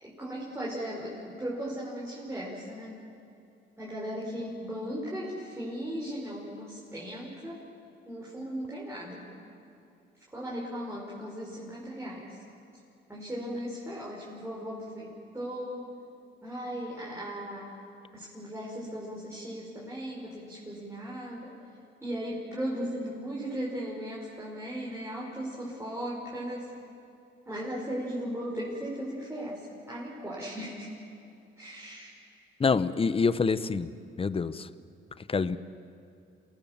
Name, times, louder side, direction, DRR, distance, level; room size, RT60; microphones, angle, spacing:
voice 1, 0.0-3.0 3.8-7.6 8.0-9.2 10.3-12.4 13.1-15.9 16.4-17.7 18.1-21.5 22.0-26.7 27.5-30.9 31.6-32.1, equal, 15° right, -5 dB, 5.0 m, -37 dB
voice 2, 32.6-33.9 34.2-34.7 35.3-35.6, left 5 dB, 30° left, 15 dB, 0.8 m, -26 dB
27.5 x 18.5 x 7.4 m, 2.6 s
cardioid pair, 90°, 20 cm